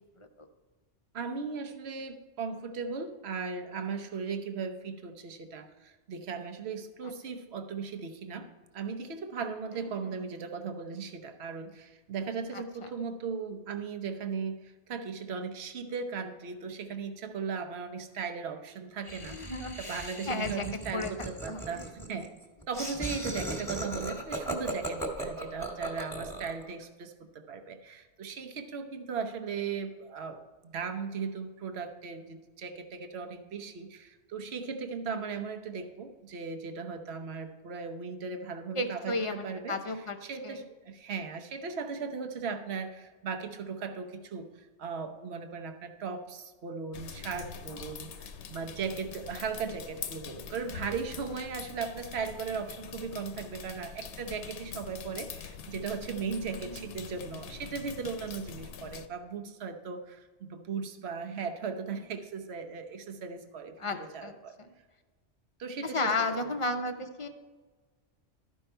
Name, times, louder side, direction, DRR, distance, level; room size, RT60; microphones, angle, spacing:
voice 1, 1.1-8.5 8.7-22.4 22.7-30.4 30.6-39.8 40.2-64.6 65.6-66.1 66.4-66.5, right 5 dB, 60° right, 7 dB, 1.1 m, -37 dB
voice 2, 9.8-10.1 12.5-12.9 19.3-20.6 20.9-21.1 21.5-21.6 38.8-40.2 40.4-40.6 56.4-56.8 63.8-64.3 65.8-67.3, left 2 dB, 35° left, 7 dB, 0.5 m, -34 dB
Laughter, 19.0-26.6, right 1 dB, ahead, 1.6 m, -37 dB
sound 1, 46.9-59.1, left 7 dB, 70° left, 0.9 m, -44 dB
13.0 x 5.5 x 4.4 m, 1.3 s
omnidirectional pair, 1.3 m